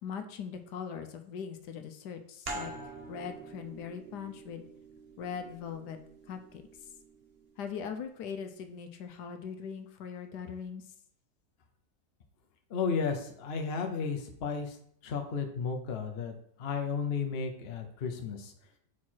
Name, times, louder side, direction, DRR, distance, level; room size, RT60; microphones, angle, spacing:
voice 1, 0.0-2.7 3.1-4.6 5.2-6.0 6.3-6.6 7.6-10.8, left 7 dB, 75° left, 7 dB, 1.2 m, -40 dB
sound 1, 2.5-7.7, right 2 dB, 40° right, 1.0 m, -46 dB
voice 2, 12.7-14.8 15.0-16.3 16.6-18.5, left 5 dB, 50° left, 4 dB, 0.8 m, -33 dB
4.7 x 4.6 x 4.3 m, 0.67 s
omnidirectional pair, 1.8 m